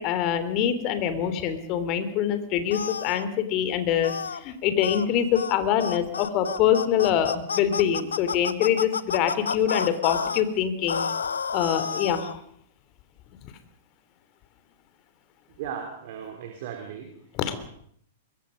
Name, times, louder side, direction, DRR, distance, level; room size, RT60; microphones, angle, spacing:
voice 1, 0.0-11.0 11.5-12.4 17.3-17.6, left 9 dB, 35° left, 10 dB, 3.2 m, -25 dB
sound 1, 2.7-3.3 4.0-4.4 4.8-5.1 5.4-5.6 5.8-10.4 10.9-12.4, left 6 dB, 70° left, 1.0 m, -30 dB
voice 2, 15.6-17.1, right 8 dB, 50° right, 3 dB, 3.4 m, -36 dB
24.5 x 23.0 x 5.4 m, 0.65 s
figure-of-eight pair, 105°, 0 cm